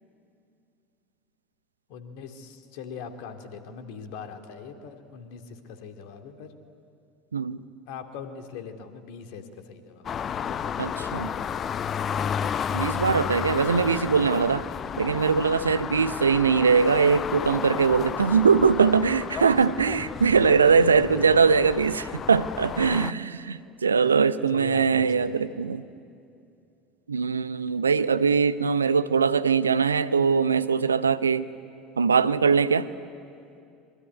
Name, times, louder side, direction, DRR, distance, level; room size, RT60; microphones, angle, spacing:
voice 1, 1.9-6.5 7.9-10.1 10.3-11.6 15.8-16.1 21.0-21.4 24.0-24.2 24.5-25.4, left 6 dB, 55° left, 6 dB, 2.5 m, -41 dB
voice 2, 7.3-7.6 10.8-11.3 12.7-14.6 15.0-25.8 27.1-31.5 32.0-32.9, right 5 dB, 80° right, 14 dB, 0.7 m, -21 dB
sound 1, 10.0-23.1, left 7 dB, 35° left, 0.7 m, -32 dB
25.5 x 23.5 x 9.7 m, 2.5 s
figure-of-eight pair, 70°, 0 cm